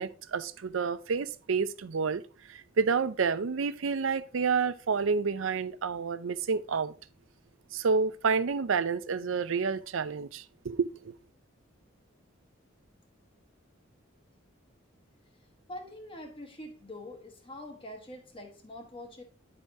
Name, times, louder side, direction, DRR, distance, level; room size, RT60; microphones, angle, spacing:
voice 1, 0.0-2.2 2.5-6.9 7.7-11.1, right 5 dB, 80° right, 0.5 m, -29 dB
voice 2, 15.7-19.2, left 1 dB, 25° left, 1.3 m, -44 dB
9.9 x 4.9 x 2.7 m
head